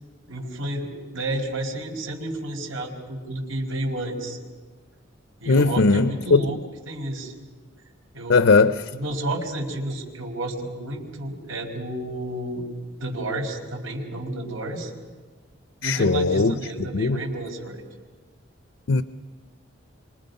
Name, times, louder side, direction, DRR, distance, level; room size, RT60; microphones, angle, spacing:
voice 1, 0.3-4.4 5.4-6.6 6.9-7.3 8.1-8.4 8.9-12.6 13.0-14.9 15.8-17.8, right 1 dB, 80° right, 4.9 m, -31 dB
voice 2, 5.5-6.6 8.3-8.9 15.8-17.2 18.9-19.0, left 3 dB, 70° left, 0.6 m, -19 dB
28.5 x 25.5 x 5.4 m
head